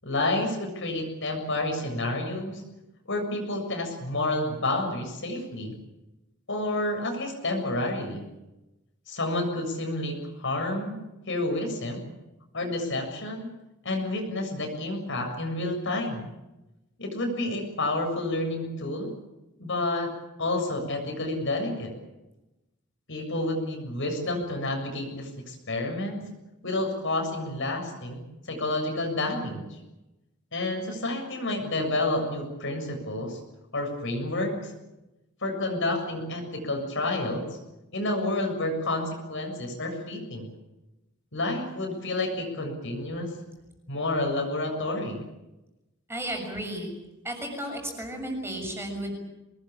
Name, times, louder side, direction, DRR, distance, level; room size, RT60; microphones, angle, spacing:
voice 1, 0.0-2.6 3.1-5.7 6.5-8.2 9.1-11.0 11.3-12.0 12.5-13.5 13.8-16.3 17.0-19.1 19.6-20.1 20.4-21.9 23.1-26.2 26.6-29.7 30.5-33.4 33.7-34.7 35.4-37.4 37.9-40.5 41.3-43.3 43.9-45.2, left 2 dB, 60° left, 3 dB, 7.1 m, -29 dB
voice 2, 46.1-46.9 47.2-49.1, right 1 dB, 10° right, 2 dB, 6.7 m, -33 dB
24.5 x 20.0 x 8.7 m, 0.99 s
head